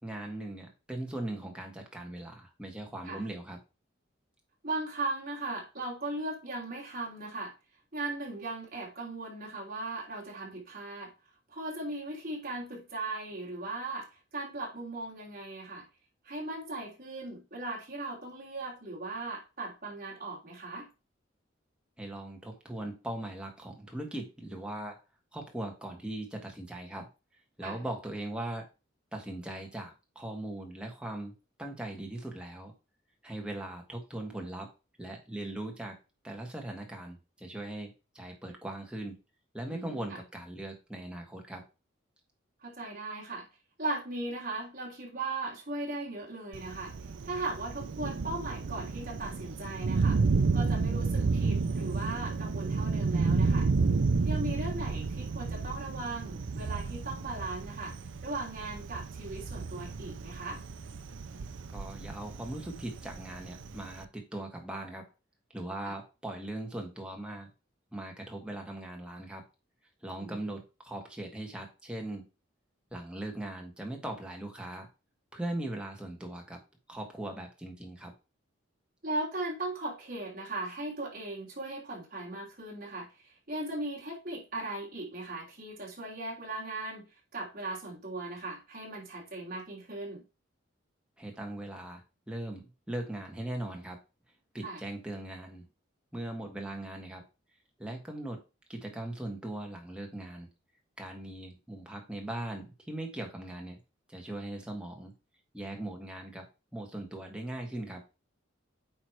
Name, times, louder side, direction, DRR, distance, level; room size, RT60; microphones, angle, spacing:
voice 1, 0.0-3.6 22.0-25.0 25.3-27.1 27.6-28.7 29.1-31.3 31.6-32.7 33.2-34.7 35.0-36.0 36.2-39.2 39.5-41.6 61.7-65.1 65.5-67.5 67.9-69.4 70.0-72.3 72.9-74.9 75.3-76.6 76.9-78.1 91.2-92.0 92.3-94.0 94.5-95.6 96.1-97.2 97.8-98.4 98.7-100.5 101.0-103.8 104.1-105.1 105.5-108.0, right 1 dB, 5° right, 1 dB, 1.5 m, -39 dB
voice 2, 4.6-7.5 7.9-11.1 11.5-15.9 16.2-20.9 27.6-27.9 39.7-40.2 42.6-43.4 43.8-46.9 47.2-50.2 50.5-53.7 54.2-58.0 58.2-60.6 65.8-65.9 70.2-70.5 79.0-90.2 94.6-94.8, right 2 dB, 45° right, -3 dB, 3.2 m, -38 dB
Thunder, 46.5-64.0, right 4 dB, 65° right, 0.5 m, -31 dB
9.0 x 3.2 x 4.5 m, 0.29 s
head